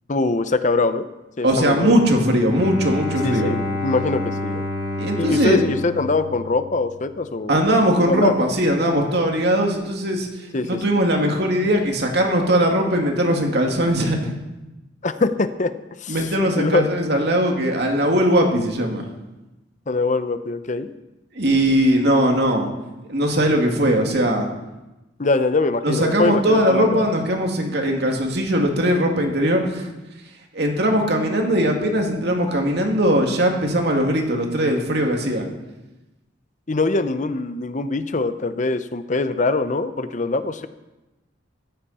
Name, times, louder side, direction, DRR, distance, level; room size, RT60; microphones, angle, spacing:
voice 1, 0.1-1.1 1.4-2.0 3.2-4.6 5.2-7.6 8.1-8.3 10.5-10.7 15.0-15.7 16.0-16.9 19.9-20.9 25.2-27.1 36.7-40.7, left 3 dB, 40° left, 11 dB, 0.7 m, -23 dB
voice 2, 1.4-3.5 5.0-5.6 7.5-10.3 10.6-14.3 16.1-19.1 21.4-22.7 23.1-24.5 25.8-29.9 30.5-35.5, equal, 60° right, 2 dB, 2.4 m, -20 dB
Bowed string instrument, 2.4-7.1, left 1 dB, 30° right, 6.3 m, -29 dB
15.0 x 14.5 x 4.3 m, 1.0 s
head